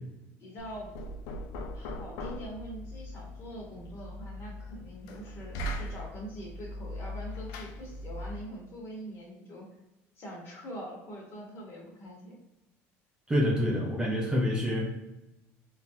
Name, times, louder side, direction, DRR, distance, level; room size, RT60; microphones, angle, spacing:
voice 1, 0.4-0.9 1.7-9.7 10.2-12.4, right 1 dB, 40° left, -4 dB, 1.4 m, -43 dB
Knock, 0.6-8.5, left 1 dB, 80° left, 0.5 m, -40 dB
voice 2, 13.3-15.1, left 1 dB, 15° right, -2 dB, 0.5 m, -27 dB
3.6 x 2.5 x 2.8 m, 0.95 s
cardioid pair, 130°, 6 cm